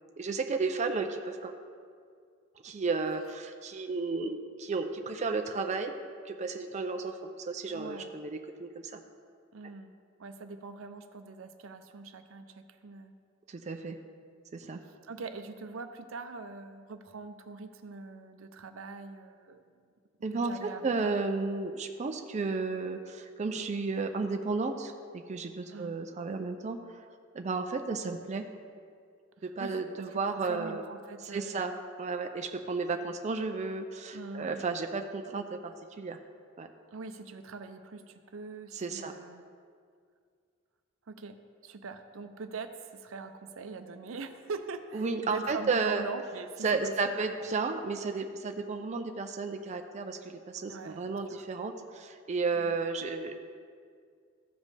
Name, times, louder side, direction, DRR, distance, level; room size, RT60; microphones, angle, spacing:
voice 1, 0.2-1.5 2.6-5.9 6.2-9.0 13.5-14.0 14.5-14.8 20.2-27.0 27.3-28.4 29.4-30.8 31.3-31.7 32.0-36.2 36.6-36.7 38.7-39.1 44.9-46.1 46.6-53.3, right 4 dB, 35° right, 5 dB, 0.4 m, -33 dB
voice 2, 7.7-8.1 9.5-9.9 10.2-13.1 14.8-19.9 20.4-21.1 25.7-25.9 29.6-29.8 30.1-31.8 34.1-34.6 36.9-39.4 41.1-41.4 41.6-47.1 50.6-51.4 52.5-52.8, right 4 dB, 80° right, 8 dB, 0.6 m, -43 dB
14.5 x 5.2 x 3.3 m, 2.2 s
head